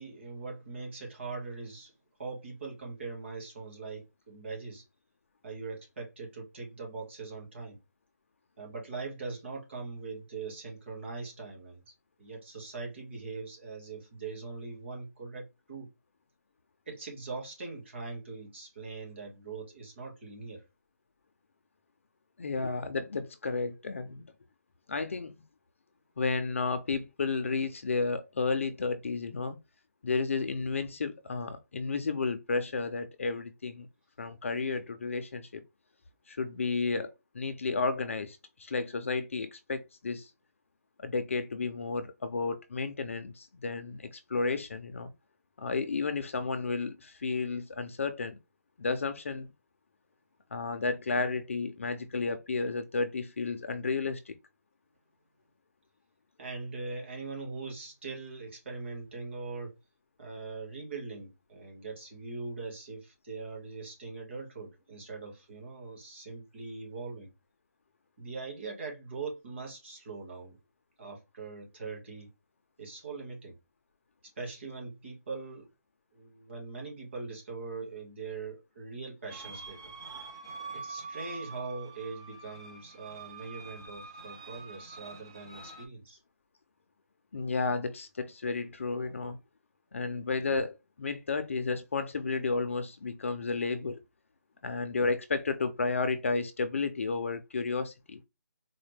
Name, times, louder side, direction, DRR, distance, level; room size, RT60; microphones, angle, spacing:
voice 1, 0.0-1.9 2.2-4.8 5.4-7.8 8.6-11.8 12.2-15.9 16.9-20.6 56.4-59.7 60.2-67.3 68.2-70.6 71.0-72.3 72.8-73.5 74.4-75.7 76.1-79.9 80.7-86.2, right 4 dB, 40° right, 1.7 m, -41 dB
voice 2, 22.4-24.2 24.9-25.3 26.2-29.6 30.0-33.9 34.2-35.6 36.3-40.3 41.0-45.1 45.6-48.4 48.8-49.5 50.5-54.3 87.3-89.4 89.9-94.0 94.6-98.2, left 4 dB, 45° left, 0.4 m, -32 dB
sound 1, 79.3-85.8, right 4 dB, 15° right, 0.4 m, -45 dB
4.1 x 2.1 x 3.2 m
hypercardioid pair, 175°, 10 cm